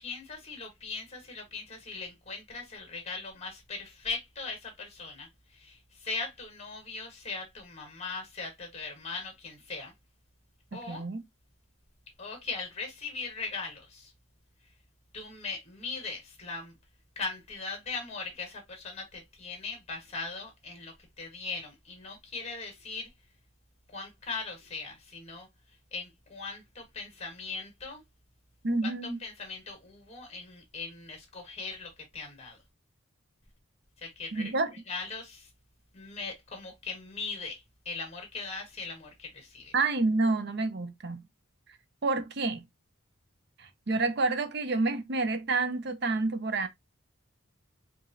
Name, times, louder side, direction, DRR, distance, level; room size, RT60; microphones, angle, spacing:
voice 1, 0.0-9.9 10.7-11.0 12.2-14.1 15.1-16.7 17.1-23.1 23.9-25.5 25.9-28.0 28.8-28.9 29.2-32.6 34.0-34.5 34.9-35.5 35.9-39.7, left 4 dB, 30° left, 1.6 m, -39 dB
voice 2, 10.7-11.2 28.6-29.2 34.3-34.7 39.7-41.2 42.0-42.6 43.6-46.7, right 3 dB, 50° right, 0.6 m, -29 dB
4.8 x 2.6 x 2.6 m
head